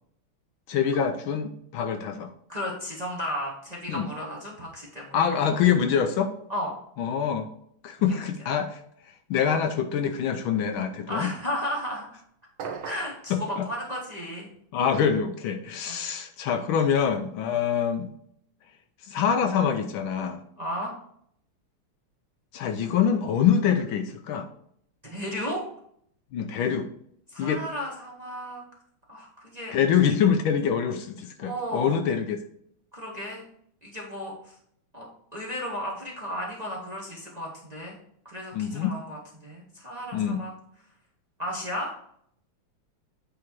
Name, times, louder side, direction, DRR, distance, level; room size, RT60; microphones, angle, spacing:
voice 1, 0.7-2.3 3.9-4.1 5.1-6.3 7.0-7.5 7.8-8.8 9.3-11.3 13.3-13.7 14.7-18.1 19.0-20.4 22.5-24.5 26.3-26.9 27.4-27.6 29.7-32.4 38.5-39.0 40.1-40.4, left 7 dB, 75° left, 7 dB, 1.3 m, -25 dB
voice 2, 2.5-5.1 6.5-6.8 11.1-12.2 12.8-14.5 15.9-16.0 17.5-17.6 20.6-20.9 25.0-25.6 27.3-28.6 29.1-29.7 31.4-32.0 32.9-33.4 33.8-34.5 34.9-35.0 35.3-38.0 38.2-40.5 41.4-41.9, equal, 25° right, -3 dB, 1.0 m, -34 dB
sound 1, 12.6-13.2, right 5 dB, 75° right, 1.5 m, -36 dB
8.5 x 3.8 x 4.5 m, 0.68 s
omnidirectional pair, 2.4 m